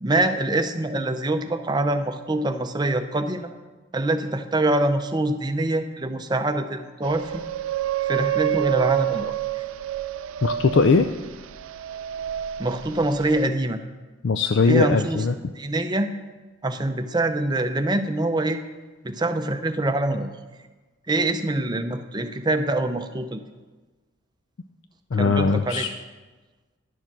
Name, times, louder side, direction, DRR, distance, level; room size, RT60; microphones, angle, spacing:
voice 1, 0.0-3.5 3.9-7.4 8.0-9.6 12.6-13.8 14.7-15.2 15.5-16.1 16.6-18.6 19.0-20.3 21.1-23.4 25.2-25.9, right 2 dB, 20° right, 7 dB, 0.6 m, -24 dB
sound 1, 7.0-13.5, right 12 dB, 75° right, 0.4 m, -28 dB
voice 2, 10.4-11.1 14.2-15.3 25.1-25.9, left 4 dB, 60° left, 8 dB, 0.4 m, -20 dB
11.5 x 6.8 x 6.0 m, 1.2 s
head